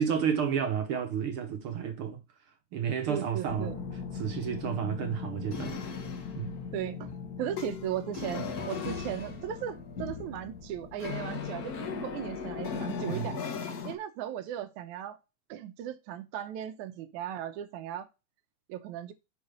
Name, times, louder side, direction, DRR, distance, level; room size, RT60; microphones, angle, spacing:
voice 1, 0.0-2.2 2.7-3.8 4.1-5.8 6.3-6.6 13.1-13.4, right 7 dB, 60° right, 1.6 m, -31 dB
voice 2, 3.1-3.8 6.7-7.1 7.4-13.4 13.9-15.2 15.5-18.1 18.7-19.1, right 11 dB, 80° right, 2.2 m, -37 dB
sound 1, 3.5-14.0, left 5 dB, 70° left, 0.8 m, -37 dB
5.7 x 5.6 x 5.2 m
omnidirectional pair, 3.4 m